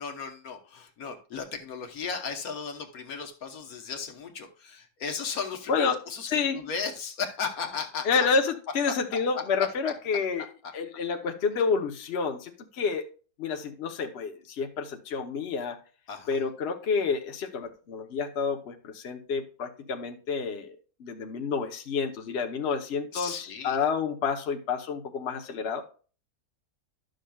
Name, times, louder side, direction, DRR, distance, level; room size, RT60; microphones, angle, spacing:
voice 1, 0.0-8.3 8.9-9.4 16.1-16.4 23.1-23.8, left 5 dB, 75° left, 5 dB, 1.5 m, -36 dB
voice 2, 6.3-6.6 8.0-10.4 10.7-13.0 13.4-15.8 16.3-25.8, left 5 dB, 50° left, 4 dB, 1.0 m, -29 dB
11.5 x 6.4 x 2.3 m, 0.37 s
omnidirectional pair, 1.6 m